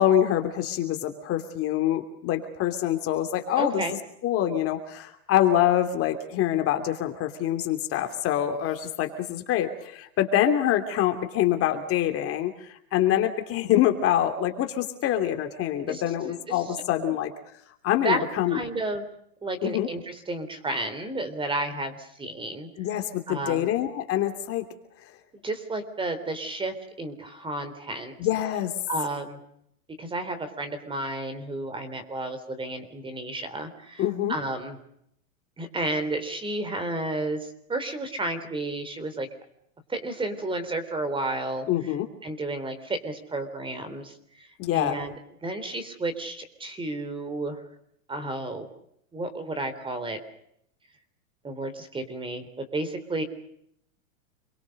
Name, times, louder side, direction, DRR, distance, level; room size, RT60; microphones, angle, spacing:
voice 1, 0.0-3.8 4.2-17.3 17.8-18.6 19.6-19.9 22.8-24.6 28.2-28.7 34.0-34.4 41.7-42.1 44.6-45.0, left 11 dB, 30° left, 6 dB, 2.9 m, -25 dB
voice 2, 3.6-4.0 15.9-16.7 17.0-17.2 17.9-18.2 18.5-19.1 19.4-22.7 23.3-23.7 25.4-28.1 28.9-29.4 30.0-34.8 35.6-39.3 39.9-41.7 42.2-44.5 44.7-45.1 45.4-47.6 48.1-48.7 49.1-50.2 51.4-53.2, right 2 dB, 10° right, 11 dB, 3.6 m, -32 dB
28.0 x 23.5 x 6.6 m, 0.73 s
supercardioid pair, 145°, 42 cm